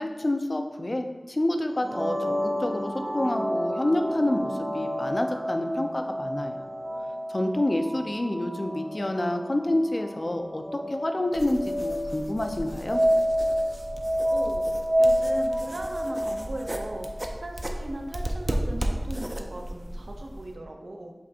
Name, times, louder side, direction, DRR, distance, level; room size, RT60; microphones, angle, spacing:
voice 1, 0.0-6.6 7.3-13.0, left 1 dB, 40° left, 5 dB, 0.4 m, -28 dB
sound 1, 1.7-17.4, equal, 55° right, 0.9 m, -29 dB
sound 2, 11.3-20.6, right 1 dB, 30° right, 0.4 m, -35 dB
voice 2, 14.3-14.7 15.0-21.1, right 1 dB, 80° right, 2 dB, 0.6 m, -38 dB
5.1 x 3.2 x 2.7 m, 1.2 s
wide cardioid pair, 65°, 0 cm